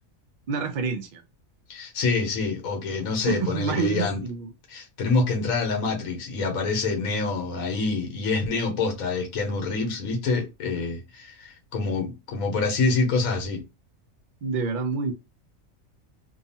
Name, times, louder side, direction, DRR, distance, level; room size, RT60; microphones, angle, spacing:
voice 1, 0.5-1.2 3.3-4.5 14.4-15.1, right 5 dB, 85° right, 0.4 m, -27 dB
voice 2, 1.7-4.2 4.7-13.6, left 3 dB, 90° left, 1.3 m, -26 dB
2.8 x 2.3 x 2.7 m
omnidirectional pair, 1.4 m